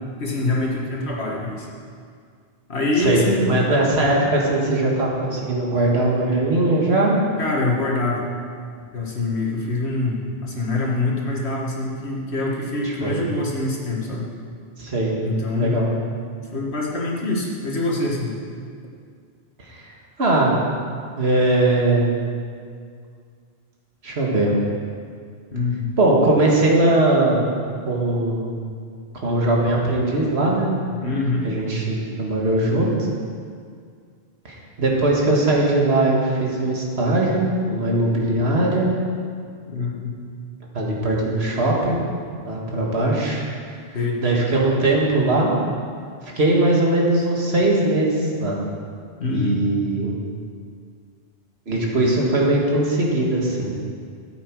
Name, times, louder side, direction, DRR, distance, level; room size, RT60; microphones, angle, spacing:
voice 1, 0.2-1.7 2.7-3.6 7.4-8.2 8.9-14.3 15.2-15.8 16.5-18.3 25.5-25.9 31.0-31.5 39.7-40.1 43.9-44.2 49.2-49.6, left 2 dB, 80° left, -2 dB, 2.0 m, -24 dB
voice 2, 3.0-7.2 12.8-13.2 14.8-15.1 15.6-15.9 19.7-19.8 20.2-20.6 21.2-22.2 24.0-24.6 26.0-27.5 27.9-28.5 29.1-30.9 31.4-33.1 34.4-38.9 40.7-42.0 42.4-43.4 44.2-45.5 46.2-48.6 49.3-50.1 51.7-53.7, right 2 dB, 75° right, -2 dB, 2.1 m, -20 dB
13.5 x 8.1 x 4.7 m, 2.1 s
omnidirectional pair, 1.1 m